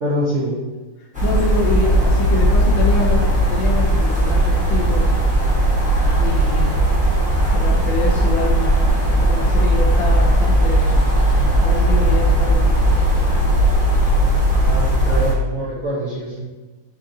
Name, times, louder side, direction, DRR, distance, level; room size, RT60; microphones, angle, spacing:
voice 1, 0.0-0.6 14.6-16.4, equal, 65° right, -7 dB, 0.7 m, -24 dB
voice 2, 1.0-5.1 6.1-6.8 7.5-8.7 9.2-10.9 11.6-12.8, left 3 dB, 70° left, -3 dB, 1.2 m, -25 dB
sound 1, 1.1-15.3, right 1 dB, 10° right, 0.3 m, -17 dB
4.5 x 3.7 x 2.6 m, 1.2 s
omnidirectional pair, 2.4 m